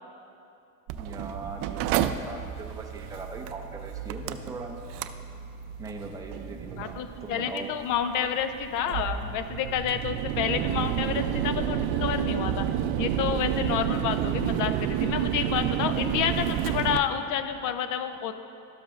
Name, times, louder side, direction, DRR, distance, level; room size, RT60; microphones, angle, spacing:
voice 1, 0.9-4.8 5.8-7.7, right 4 dB, 10° right, 1 dB, 0.6 m, -40 dB
Mechanical fan, 0.9-17.0, right 10 dB, 60° right, 0.5 m, -30 dB
voice 2, 6.8-12.7 13.0-18.3, left 8 dB, 50° left, 10 dB, 0.6 m, -29 dB
12.5 x 7.3 x 2.4 m, 2.6 s
supercardioid pair, 125°, 40 cm